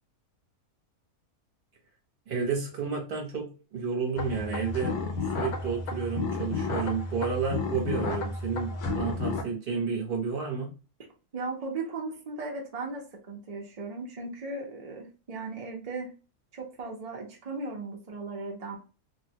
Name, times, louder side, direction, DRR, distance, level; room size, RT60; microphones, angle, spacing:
voice 1, 2.3-5.0 5.4-10.7, right 5 dB, 40° right, -1 dB, 0.9 m, -31 dB
sound 1, 4.2-9.4, left 3 dB, 80° left, 1.2 m, -32 dB
voice 2, 11.3-16.1 16.5-18.8, right 3 dB, 60° right, 0 dB, 0.4 m, -37 dB
3.4 x 2.2 x 2.7 m, 0.33 s
omnidirectional pair, 1.6 m